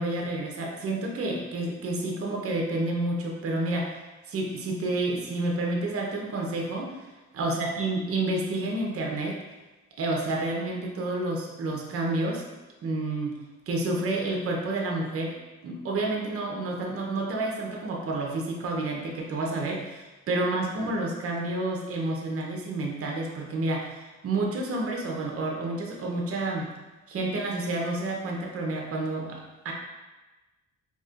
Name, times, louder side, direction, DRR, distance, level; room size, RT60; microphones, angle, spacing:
voice 1, 0.0-4.0 4.3-7.1 7.3-9.4 10.0-12.4 12.8-13.4 13.7-15.4 15.6-26.7 27.1-29.7, right 2 dB, 50° right, 0 dB, 0.7 m, -29 dB
4.1 x 2.9 x 2.4 m, 1.1 s
cardioid pair, 90°, 30 cm